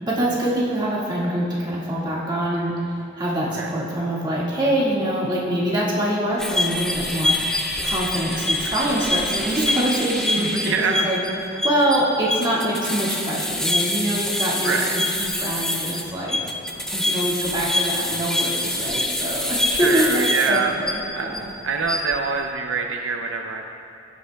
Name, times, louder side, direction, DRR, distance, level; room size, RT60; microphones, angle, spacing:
voice 1, 0.0-2.8 3.2-7.4 7.8-11.2 11.6-16.4 16.9-21.5, right 1 dB, 25° right, -6 dB, 1.8 m, -24 dB
sound 1, 6.4-21.4 21.8-22.2, left 1 dB, 5° left, 0.5 m, -25 dB
voice 2, 10.4-11.1 14.6-15.0 18.7-19.0 19.7-20.7 21.1-21.3 21.6-23.7, right 4 dB, 70° right, 3 dB, 0.5 m, -25 dB
17.0 x 8.0 x 2.3 m, 2.7 s
head